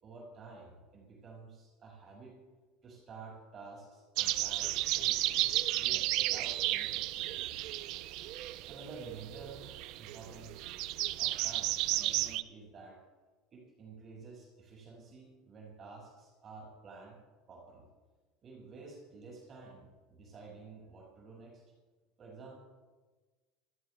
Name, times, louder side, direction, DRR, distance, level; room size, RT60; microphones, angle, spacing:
voice 1, 0.0-2.4 2.8-7.7 8.7-10.8 11.2-13.0 13.5-17.2 17.5-17.9 18.4-21.6 22.2-22.5, right 4 dB, 40° right, -3 dB, 5.8 m, -51 dB
sound 1, 4.2-12.4, right 16 dB, 65° right, 0.7 m, -33 dB
28.5 x 17.0 x 2.4 m, 1.3 s
supercardioid pair, 115°, 0 cm